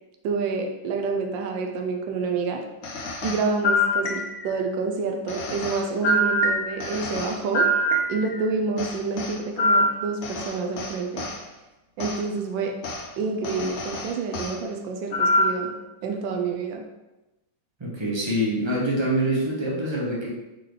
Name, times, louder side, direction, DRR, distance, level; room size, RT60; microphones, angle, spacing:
voice 1, 0.2-2.6 3.2-7.7 8.1-11.3 12.0-12.8 13.2-15.7 16.0-16.8, right 4 dB, 85° right, 3 dB, 1.3 m, -28 dB
sound 1, 2.8-4.6 5.3-8.4 8.8-11.4 12.0-12.2 12.8-13.0 13.4-14.5 15.1-15.7, equal, 65° left, 0.7 m, -25 dB
voice 2, 17.8-20.3, right 1 dB, 40° right, -4 dB, 0.4 m, -25 dB
4.4 x 3.8 x 3.2 m, 1.0 s
omnidirectional pair, 2.0 m